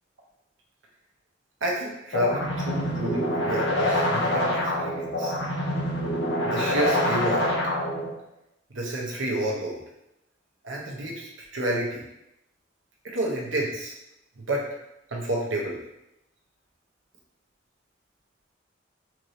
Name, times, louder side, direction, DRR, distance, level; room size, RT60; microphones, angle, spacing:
voice 1, 1.6-5.3 6.4-7.5 8.7-9.8 10.6-12.0 13.0-13.9 14.4-14.7 15.1-15.8, right 1 dB, 90° right, -2 dB, 0.9 m, -29 dB
sound 1, 2.1-8.1, left 1 dB, 70° left, 0.7 m, -26 dB
4.6 x 2.6 x 3.1 m, 0.86 s
head